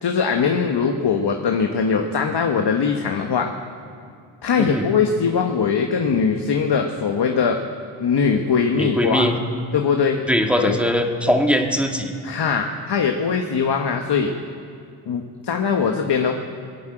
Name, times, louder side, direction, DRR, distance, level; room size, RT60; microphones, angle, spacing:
voice 1, 0.0-3.5 4.4-7.6 8.0-9.3 9.7-10.2 10.6-10.8 12.2-14.3 15.1-16.3, left 6 dB, 55° left, 4 dB, 1.3 m, -21 dB
voice 2, 8.8-9.4 10.3-12.1, equal, ahead, 2 dB, 2.0 m, -20 dB
21.0 x 8.4 x 7.9 m, 2.4 s
supercardioid pair, 45°, 48 cm